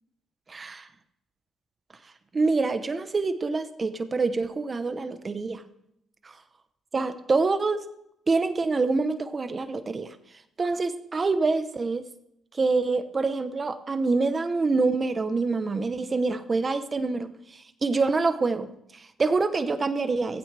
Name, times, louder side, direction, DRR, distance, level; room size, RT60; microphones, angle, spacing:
voice 1, 0.5-0.9 2.3-5.6 6.9-7.9 8.3-10.1 10.6-12.1 12.5-20.4, right 3 dB, 30° right, 9 dB, 1.0 m, -26 dB
16.0 x 15.0 x 3.5 m, 0.78 s
cardioid pair, 90°, 0 cm